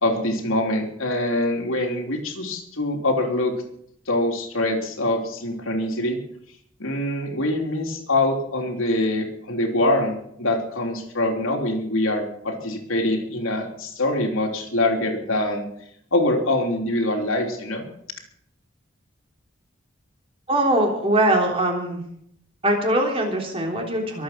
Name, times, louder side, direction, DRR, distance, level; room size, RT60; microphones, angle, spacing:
voice 1, 0.0-3.5 4.1-6.2 6.8-15.7 16.1-17.8, left 1 dB, 80° left, 1 dB, 3.4 m, -24 dB
voice 2, 20.5-22.0 22.6-24.2, right 1 dB, 30° right, 1 dB, 3.5 m, -21 dB
23.5 x 8.6 x 5.9 m, 0.70 s
head